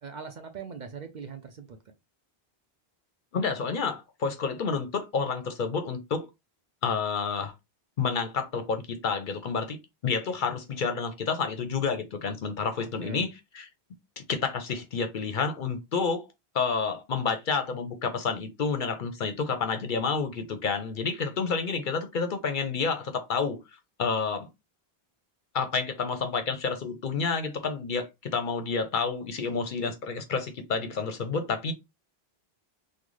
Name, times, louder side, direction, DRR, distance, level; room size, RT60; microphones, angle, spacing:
voice 1, 0.0-1.8 12.8-13.3, right 6 dB, 55° right, 0.6 m, -41 dB
voice 2, 3.3-6.3 6.8-7.5 8.0-9.8 10.0-13.3 13.5-13.7 14.2-16.3 16.5-23.6 24.0-24.5 25.5-31.7, left 5 dB, 60° left, 0.7 m, -29 dB
3.8 x 2.1 x 3.1 m
omnidirectional pair, 1.1 m